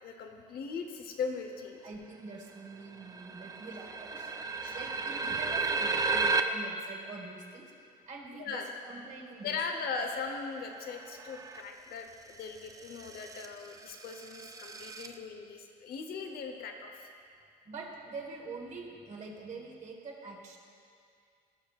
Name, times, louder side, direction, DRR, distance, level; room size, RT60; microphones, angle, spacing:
voice 1, 0.0-1.8 4.6-4.9 8.4-8.7 9.4-17.1, left 5 dB, 65° left, 5 dB, 0.9 m, -39 dB
voice 2, 1.8-7.7 8.1-9.6 16.5-16.6 17.6-20.6, right 3 dB, 45° right, 0 dB, 1.5 m, -45 dB
sound 1, 2.4-2.5 2.7-6.4 10.7-11.6 12.4-15.1, right 4 dB, 20° right, 0.4 m, -34 dB
17.0 x 6.0 x 2.4 m, 2.3 s
cardioid pair, 110°, 17 cm